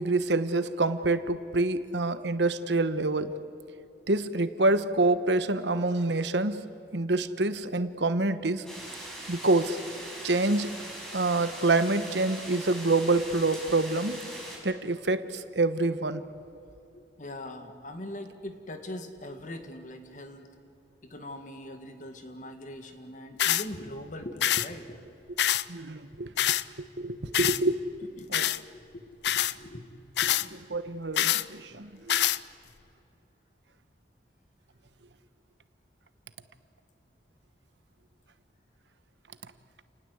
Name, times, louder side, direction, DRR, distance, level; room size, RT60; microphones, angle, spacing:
voice 1, 0.0-3.4 4.1-6.6 6.9-8.6 9.3-9.8 10.2-10.8 11.1-14.2 14.6-16.2 25.7-26.3 26.8-27.8 28.3-28.5 30.5-32.2, right 2 dB, 75° right, 12 dB, 1.2 m, -27 dB
sound 1, 8.7-14.6, right 1 dB, 5° left, 5.3 m, -41 dB
voice 2, 16.9-20.5 21.0-25.0 28.2-29.8 30.2-30.4, left 1 dB, 45° left, 7 dB, 1.9 m, -41 dB
sound 2, 23.4-23.7 24.4-24.7 25.4-25.7 26.4-26.6 27.3-27.6 28.3-28.6 29.2-29.5 30.2-30.5 31.2-31.4 32.1-32.4, left 12 dB, 70° left, 0.6 m, -25 dB
29.5 x 19.5 x 8.1 m, 2.8 s
head